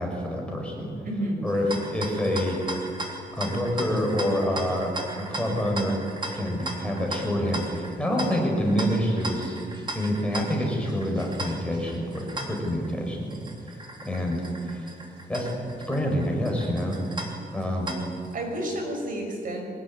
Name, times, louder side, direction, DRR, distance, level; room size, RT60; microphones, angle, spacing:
voice 1, 0.0-0.9 1.4-2.6 3.4-6.0 6.3-9.6 9.9-13.4 14.0-14.9 15.3-15.5 15.9-17.3 17.5-18.0, equal, 5° left, -1 dB, 5.5 m, -27 dB
voice 2, 1.0-1.5 18.3-19.6, right 1 dB, 60° right, 3 dB, 5.7 m, -30 dB
sound 1, 1.5-18.3, right 1 dB, 30° right, 3.4 m, -38 dB
23.5 x 20.5 x 9.8 m, 2.3 s
wide cardioid pair, 160°, 16 cm